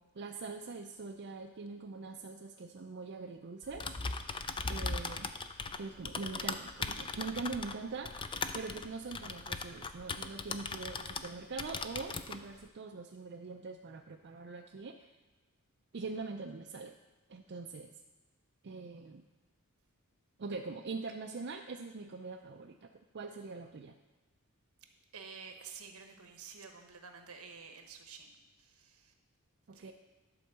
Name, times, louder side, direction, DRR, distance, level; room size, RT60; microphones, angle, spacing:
voice 1, 0.1-3.9 4.7-5.3 5.8-8.1 8.5-15.1 15.9-17.0 17.3-17.9 18.6-19.3 20.4-24.0 29.7-29.9, right 4 dB, 50° right, 3 dB, 0.4 m, -43 dB
Typing, 3.6-11.3 11.6-12.4, left 4 dB, 20° left, 0.4 m, -39 dB
voice 2, 25.1-28.3 28.6-29.1 29.7-29.9, right 6 dB, 70° right, 5 dB, 1.1 m, -50 dB
11.5 x 4.5 x 6.7 m, 1.2 s
head